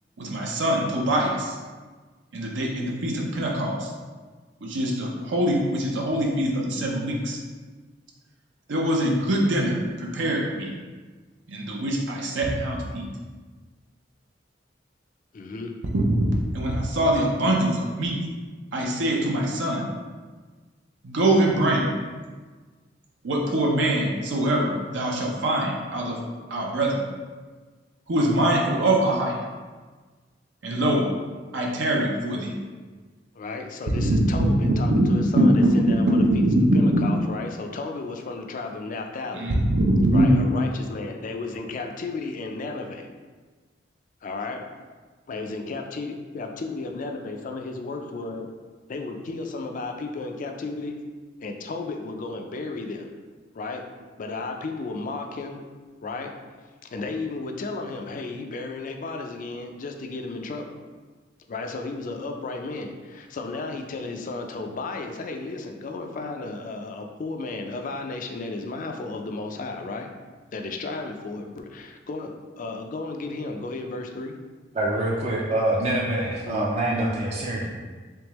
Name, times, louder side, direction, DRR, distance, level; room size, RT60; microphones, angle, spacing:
voice 1, 0.2-1.6 2.3-3.9 4.6-7.4 8.7-10.7 11.5-13.1 15.9-16.3 16.5-18.2 18.7-19.9 21.0-21.9 23.2-26.2 26.5-27.0 28.1-29.4 30.6-31.1 31.5-32.5 34.0-34.5 34.9-35.4 36.3-36.6 36.9-37.0 39.3-40.3, right 1 dB, 80° right, -1 dB, 0.6 m, -23 dB
voice 2, 15.3-15.7 33.4-36.4 36.7-39.5 40.1-43.1 44.2-44.7 45.3-48.5 48.9-51.0 51.4-53.1 53.5-53.8 54.2-55.6 56.0-56.3 56.9-60.8 61.5-70.1 70.5-74.3 76.4-76.8, left 3 dB, 45° left, 4 dB, 0.4 m, -33 dB
voice 3, 74.7-77.7, right 1 dB, 35° right, -4 dB, 0.4 m, -25 dB
3.5 x 3.4 x 3.0 m, 1.4 s
head